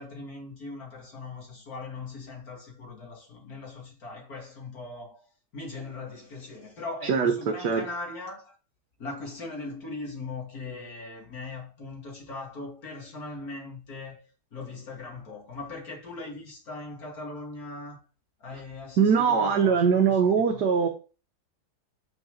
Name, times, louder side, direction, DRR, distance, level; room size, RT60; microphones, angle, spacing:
voice 1, 0.0-5.3 5.5-8.6 9.0-18.0 18.4-20.6, left 3 dB, 55° left, 2.8 m, -40 dB
voice 2, 19.0-20.9, right 6 dB, 65° right, 1.6 m, -21 dB
6.6 x 6.1 x 3.8 m
omnidirectional pair, 1.9 m